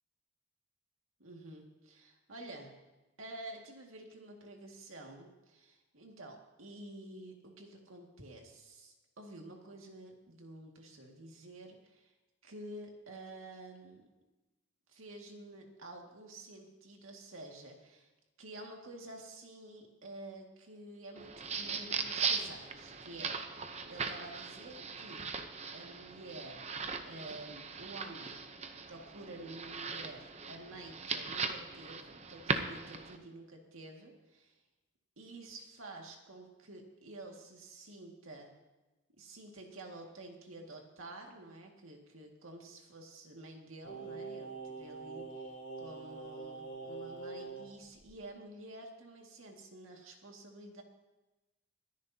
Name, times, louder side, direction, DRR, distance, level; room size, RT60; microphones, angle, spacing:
voice 1, 1.2-2.7 3.2-12.1 12.4-14.1 14.9-18.1 18.4-25.3 25.7-26.8 27.1-28.5 28.9-34.6 35.2-38.5 39.2-45.5 45.8-50.8, right 2 dB, 85° right, 1 dB, 2.1 m, -50 dB
sound 1, 21.2-33.2, right 5 dB, 30° right, 0.7 m, -39 dB
Singing, 43.8-47.7 48.0-48.1, right 4 dB, 55° left, 4.9 m, -44 dB
23.5 x 10.5 x 2.8 m, 1.1 s
head